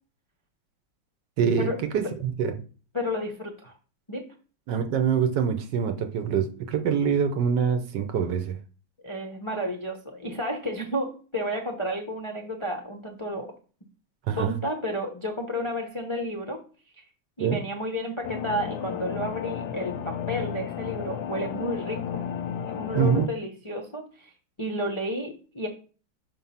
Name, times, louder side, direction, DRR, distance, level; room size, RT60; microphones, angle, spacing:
voice 1, 1.4-2.5 4.7-8.6 14.3-14.5 17.4-17.6 22.9-23.3, right 7 dB, 65° right, 7 dB, 1.3 m, -25 dB
voice 2, 2.9-3.7 4.1-4.3 9.0-13.5 14.4-16.6 17.0-17.1 17.4-22.3 22.6-24.3 24.6-25.7, equal, 35° left, 1 dB, 0.5 m, -31 dB
sound 1, 18.2-23.3, left 9 dB, 70° left, 1.0 m, -33 dB
5.8 x 4.9 x 5.6 m, 0.39 s
omnidirectional pair, 2.2 m